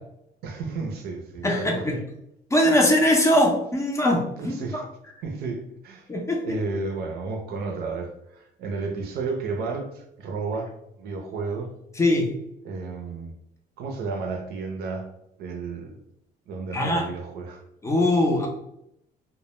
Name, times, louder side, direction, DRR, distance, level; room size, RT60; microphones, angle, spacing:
voice 1, 0.4-2.0 4.4-4.8 5.2-6.1 6.4-11.7 12.6-13.3 13.8-15.1 15.4-16.0 16.5-17.6, right 4 dB, 70° right, 0.5 m, -32 dB
voice 2, 1.4-1.9 2.5-4.8 6.1-6.6 12.0-12.3 16.7-17.1 17.8-18.5, left 1 dB, 15° left, 0.5 m, -21 dB
2.1 x 2.1 x 3.0 m
cardioid pair, 110°, 17 cm